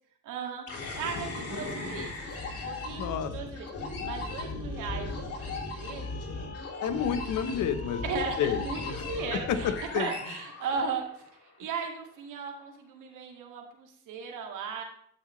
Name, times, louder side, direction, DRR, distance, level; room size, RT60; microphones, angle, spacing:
voice 1, 0.2-0.7 1.0-6.2 8.0-11.2 11.6-14.8, right 5 dB, 90° right, 1 dB, 2.2 m, -37 dB
sound 1, 0.7-11.3, left 3 dB, 50° left, 3.3 m, -37 dB
voice 2, 3.0-3.3 6.8-8.0 8.4-9.0 9.3-10.1, left 8 dB, 85° left, 9 dB, 1.0 m, -30 dB
12.0 x 8.2 x 3.1 m, 0.66 s
cardioid pair, 90°, 30 cm